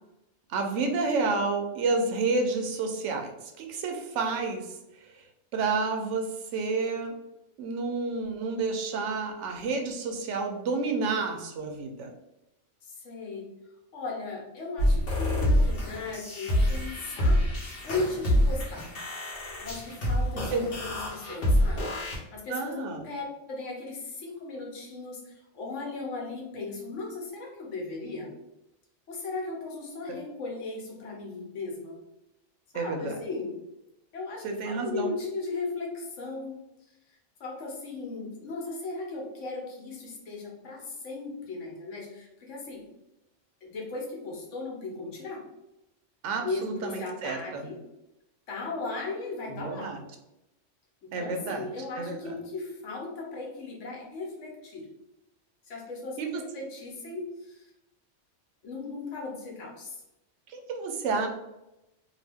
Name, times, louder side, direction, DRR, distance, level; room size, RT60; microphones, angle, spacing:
voice 1, 0.5-5.2 5.5-7.2 7.6-12.1 20.5-20.7 22.5-23.0 32.7-33.2 34.4-35.1 46.2-47.7 49.6-50.0 51.1-51.7 52.0-52.3 56.2-56.4 60.5-61.3, right 4 dB, 80° right, 4 dB, 0.9 m, -30 dB
voice 2, 12.8-13.4 13.9-17.4 17.8-18.8 19.6-28.3 29.1-32.0 32.7-33.6 34.1-36.6 37.4-42.8 43.6-45.4 46.4-47.8 48.5-49.9 51.0-54.9 55.7-57.7 58.6-60.0, left 3 dB, 75° left, -1 dB, 1.2 m, -37 dB
sound 1, 14.8-22.2, equal, 55° left, 1.0 m, -26 dB
2.8 x 2.3 x 3.4 m, 0.90 s
omnidirectional pair, 1.3 m